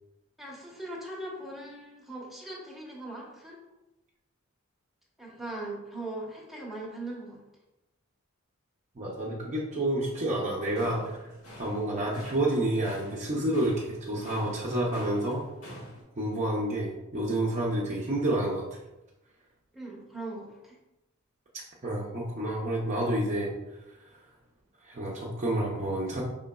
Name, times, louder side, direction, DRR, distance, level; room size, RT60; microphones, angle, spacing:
voice 1, 0.4-3.6 5.2-7.4 19.7-20.8, right 2 dB, ahead, -4 dB, 0.9 m, -40 dB
voice 2, 9.0-11.1 11.6-15.4 16.2-18.6 21.8-23.5 24.8-26.2, right 1 dB, 35° right, -4 dB, 0.6 m, -29 dB
sound 1, 10.7-16.0, equal, 85° left, 1.2 m, -47 dB
4.9 x 3.7 x 2.2 m, 0.96 s
head